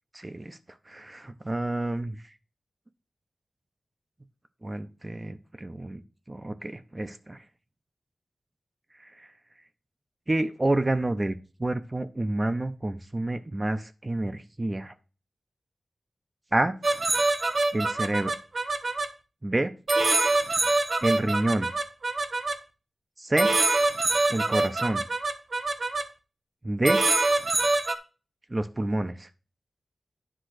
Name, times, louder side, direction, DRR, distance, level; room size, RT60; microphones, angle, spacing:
voice 1, 0.1-0.6 0.9-2.3 4.6-6.0 6.3-7.4 8.9-9.3 10.3-14.9 16.5-16.8 17.7-18.3 19.4-19.7 21.0-21.7 23.2-23.6 24.3-25.0 26.6-27.0 28.5-29.3, right 1 dB, 25° right, 9 dB, 0.6 m, -28 dB
sound 1, 16.8-19.1 19.9-22.6 23.4-26.0 26.8-28.0, right 2 dB, 50° right, 1.0 m, -25 dB
9.9 x 3.7 x 6.3 m, 0.33 s
wide cardioid pair, 110°, 0 cm